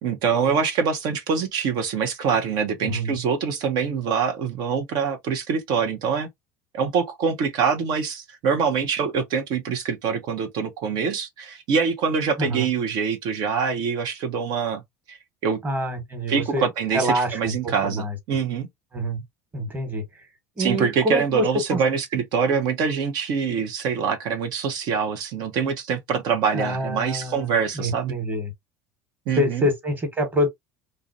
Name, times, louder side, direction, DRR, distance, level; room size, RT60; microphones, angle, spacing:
voice 1, 0.0-6.3 6.7-14.8 15.1-15.6 16.3-18.7 20.6-28.1 29.3-29.7, right 6 dB, 60° right, 0.6 m, -24 dB
voice 2, 2.8-3.1 12.4-12.7 15.6-18.2 18.9-19.2 19.5-20.3 20.6-21.8 26.5-28.5 29.4-30.5, equal, 25° right, 1.2 m, -26 dB
2.4 x 2.0 x 2.5 m
hypercardioid pair, 85°, 8 cm